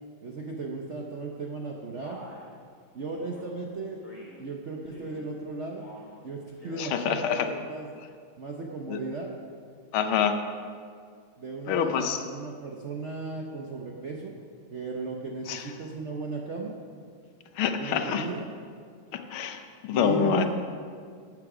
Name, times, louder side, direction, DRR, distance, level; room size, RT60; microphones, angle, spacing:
voice 1, 0.2-2.2 2.9-4.0 4.4-5.8 6.2-7.9 8.4-9.3 11.4-14.3 14.7-16.8 17.8-18.5 19.9-20.5, right 3 dB, 60° right, 0 dB, 0.7 m, -36 dB
Male speech man speaking, 2.0-2.5 3.1-3.5 4.0-4.4 4.8-5.3 5.7-6.1 6.5-7.0, equal, 20° left, 2.2 m, -47 dB
voice 2, 6.8-7.5 8.9-9.0 9.9-10.4 11.7-12.2 15.5-15.6 17.6-18.3 19.1-20.5, left 8 dB, 80° left, 7 dB, 1.6 m, -26 dB
12.0 x 8.6 x 4.9 m, 2.1 s
omnidirectional pair, 2.3 m